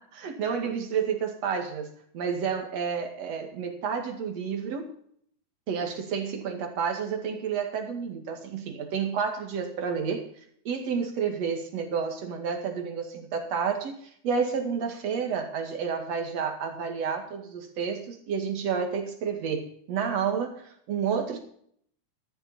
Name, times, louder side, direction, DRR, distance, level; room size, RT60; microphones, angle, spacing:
voice 1, 0.1-4.9 5.7-10.3 10.6-21.4, right 6 dB, 55° right, 4 dB, 3.0 m, -30 dB
13.5 x 12.5 x 4.3 m, 0.63 s
omnidirectional pair, 3.7 m